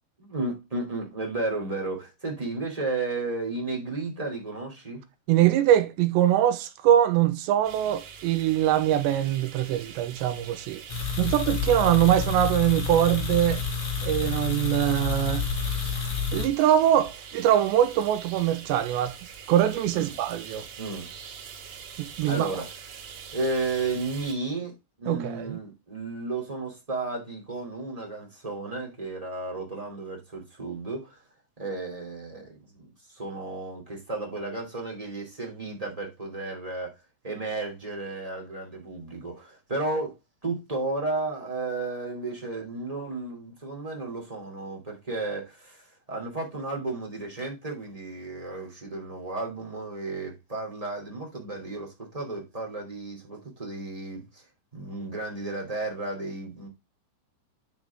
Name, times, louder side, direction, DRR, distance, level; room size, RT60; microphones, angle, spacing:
voice 1, 0.2-5.0 19.9-20.1 20.8-21.1 22.3-22.7 23.3-24.7 25.0-31.2 31.6-36.9 37.2-40.2 40.4-54.4 54.7-56.7, right 3 dB, 10° right, 1.7 m, -33 dB
voice 2, 5.3-10.8 11.2-13.6 14.0-15.5 16.3-19.1 19.5-20.7 22.0-22.5 25.1-25.6, right 11 dB, 80° right, 3.0 m, -23 dB
sound 1, 7.6-24.3, right 7 dB, 65° right, 3.5 m, -44 dB
sound 2, 10.9-16.5, left 6 dB, 70° left, 1.3 m, -29 dB
9.2 x 5.7 x 3.5 m
omnidirectional pair, 5.2 m